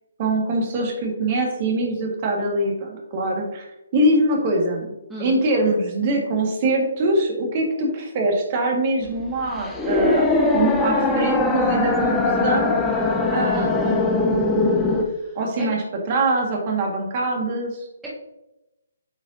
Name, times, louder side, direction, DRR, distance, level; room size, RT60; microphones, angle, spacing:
voice 1, 0.2-4.9 5.2-10.3 10.5-12.8 13.3-14.9 15.4-17.8, right 2 dB, 35° right, 1 dB, 1.7 m, -23 dB
voice 2, 5.1-5.4 13.5-13.9 15.0-15.7, right 1 dB, 10° right, -6 dB, 1.4 m, -36 dB
sound 1, 9.0-15.0, left 3 dB, 10° left, 0.7 m, -21 dB
8.8 x 4.9 x 2.7 m, 0.94 s
figure-of-eight pair, 140°, 0 cm